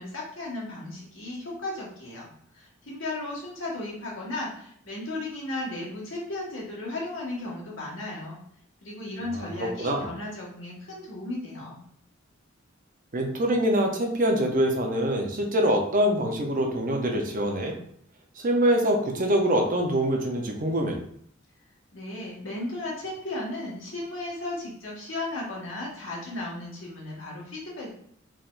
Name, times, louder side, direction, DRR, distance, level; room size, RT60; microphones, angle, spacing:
voice 1, 0.0-2.3 2.5-8.4 8.8-11.8 21.9-27.9, left 2 dB, 75° left, -4 dB, 1.6 m, -35 dB
voice 2, 9.3-10.1 13.1-17.7 18.4-21.0, equal, 45° right, 2 dB, 0.7 m, -24 dB
4.4 x 3.5 x 2.6 m, 0.63 s
head